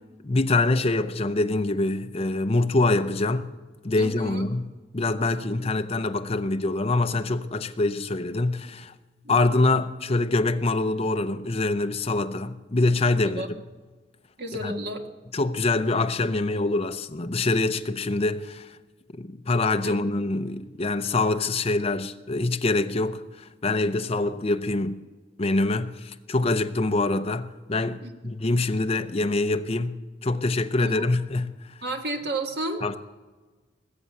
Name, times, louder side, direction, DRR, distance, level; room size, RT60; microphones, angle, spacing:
voice 1, 0.2-3.5 3.8-8.9 9.3-13.5 14.6-14.7 15.3-18.8 19.2-25.0 25.4-31.6 32.8-33.0, left 2 dB, 30° left, 0.6 m, -25 dB
voice 2, 4.0-4.4 9.2-9.3 13.2-13.5 14.4-15.0 19.8-20.0 24.2-24.3 28.0-28.1 30.8-31.0 31.8-33.0, right 1 dB, 60° right, 1.7 m, -32 dB
19.5 x 7.6 x 8.2 m
head